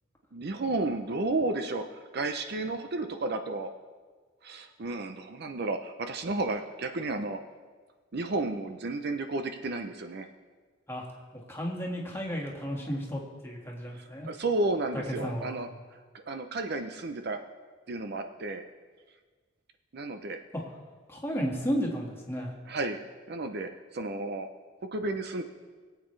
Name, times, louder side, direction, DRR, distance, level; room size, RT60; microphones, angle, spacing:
voice 1, 0.3-3.7 4.4-7.4 8.1-10.3 13.9-15.7 16.1-17.4 17.9-18.6 19.9-20.4 22.7-23.0 23.3-24.5 24.8-25.4, right 2 dB, 50° right, 7 dB, 0.6 m, -32 dB
voice 2, 11.3-14.3 14.9-15.6 20.5-20.6 21.1-22.5, equal, 10° left, -2 dB, 1.8 m, -33 dB
22.5 x 8.1 x 3.2 m, 1.4 s
head